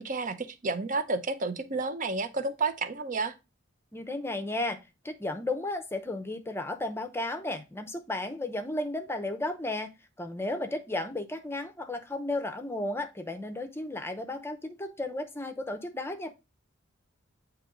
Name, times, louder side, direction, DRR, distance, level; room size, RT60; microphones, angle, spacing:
voice 1, 0.0-3.3, right 3 dB, 40° right, 0.6 m, -31 dB
voice 2, 3.9-4.8 5.0-9.9 10.2-16.3, left 2 dB, 10° left, 0.6 m, -34 dB
9.0 x 3.0 x 3.7 m
head